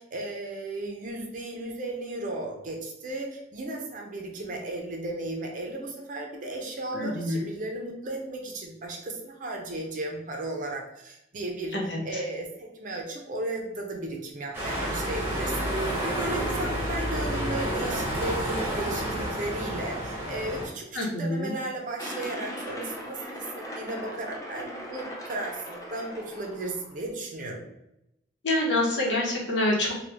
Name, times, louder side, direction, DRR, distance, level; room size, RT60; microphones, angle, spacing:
voice 1, 0.0-11.8 12.0-27.7, right 2 dB, 45° right, 1 dB, 0.5 m, -35 dB
voice 2, 6.9-7.4 11.7-12.2 20.9-21.5 28.4-30.0, left 1 dB, 80° left, -2 dB, 0.9 m, -27 dB
sound 1, 14.5-20.7, equal, 15° right, 0.9 m, -30 dB
sound 2, 22.0-26.9, equal, 20° left, 0.5 m, -39 dB
3.1 x 2.2 x 3.4 m, 0.85 s
head